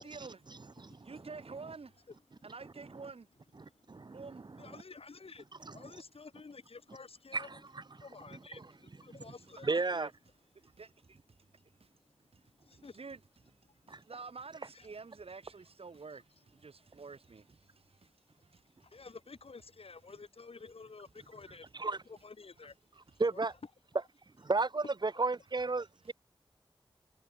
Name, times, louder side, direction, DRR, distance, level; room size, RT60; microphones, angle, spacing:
voice 1, 0.0-2.1 2.4-3.3 4.1-4.4 9.7-10.1 10.6-11.9 12.3-12.4 12.7-13.6 13.9-19.0, right 4 dB, 90° right, 5.8 m, -50 dB
voice 2, 0.8-1.1 2.3-2.5 3.6-4.2 4.6-7.6 7.9-10.0 10.6-10.7 11.5-12.0 12.4-13.0 13.7-14.1 14.7-14.9 18.0-18.1 18.6-21.7 22.0-22.8 23.1-23.5 25.1-25.2, left 4 dB, 85° left, 7.9 m, -52 dB
voice 3, 3.9-4.2 5.7-5.8 7.3-7.4 9.6-10.1 13.9-14.0 21.8-22.0 23.2-23.5 24.4-26.1, right 3 dB, 50° right, 1.1 m, -32 dB
wide cardioid pair, 75°, 10 cm